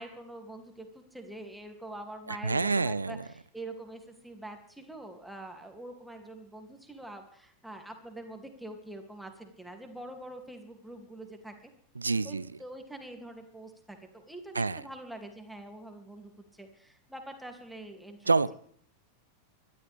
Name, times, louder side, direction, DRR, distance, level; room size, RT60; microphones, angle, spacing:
voice 1, 0.0-11.7 12.2-18.3, right 1 dB, 5° right, 4 dB, 2.7 m, -45 dB
voice 2, 2.3-3.2 12.0-12.5 14.5-14.8 18.3-18.5, right 4 dB, 80° right, 19 dB, 0.5 m, -27 dB
24.0 x 12.5 x 3.5 m, 0.62 s
figure-of-eight pair, 90°, 0 cm